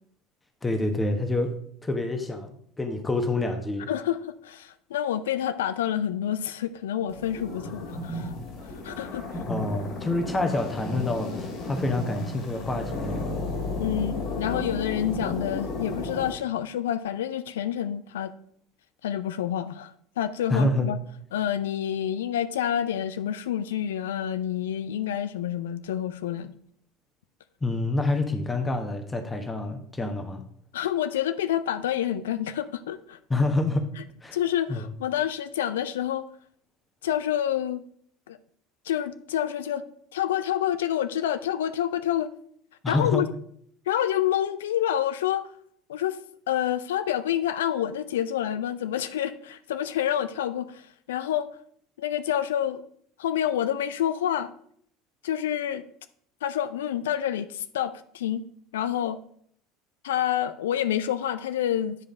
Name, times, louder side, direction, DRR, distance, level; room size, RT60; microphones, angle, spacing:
voice 1, 0.6-1.5 1.8-3.9 9.5-13.3 20.5-20.9 27.6-30.4 33.3-33.9 34.2-34.4 34.7-34.9 42.8-43.2, left 2 dB, 15° left, 6 dB, 1.2 m, -27 dB
voice 2, 3.9-8.3 8.8-9.2 13.8-18.3 19.0-21.0 21.3-26.5 30.7-33.2 34.3-36.3 37.0-37.8 38.3-38.4 38.9-39.8 40.1-42.3 42.9-43.3 43.9-45.4 45.9-46.2 46.5-51.5 52.0-52.8 53.2-54.5 55.2-55.8 56.4-58.4 58.7-59.2 60.0-62.0, left 10 dB, 70° left, 12 dB, 0.4 m, -28 dB
sound 1, 7.1-16.3, left 2 dB, 50° left, 2.6 m, -33 dB
9.6 x 5.1 x 4.8 m, 0.63 s
figure-of-eight pair, 70°, 0 cm